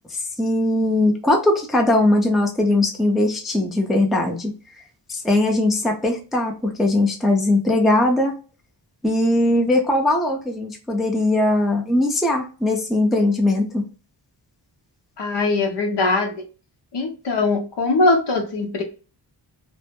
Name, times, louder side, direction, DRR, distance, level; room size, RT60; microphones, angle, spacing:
voice 1, 0.1-4.5 5.1-8.3 9.0-13.8, left 1 dB, ahead, 2 dB, 0.4 m, -20 dB
voice 2, 15.2-16.4 16.9-18.8, left 3 dB, 65° left, 4 dB, 0.8 m, -21 dB
2.1 x 2.0 x 2.8 m, 0.35 s
wide cardioid pair, 105°, 45 cm